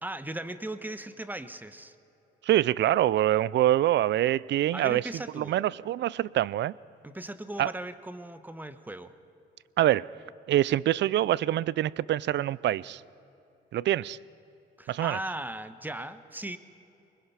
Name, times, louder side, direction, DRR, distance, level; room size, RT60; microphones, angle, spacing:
voice 1, 0.0-1.9 4.7-5.6 7.0-9.1 14.8-16.6, right 1 dB, 10° right, 1.1 m, -38 dB
voice 2, 2.4-5.0 5.4-6.7 7.6-7.7 9.8-10.1 10.5-13.0 13.7-14.2 14.9-15.2, right 13 dB, 65° right, 0.5 m, -25 dB
24.5 x 21.0 x 5.7 m
cardioid pair, 90°, 20 cm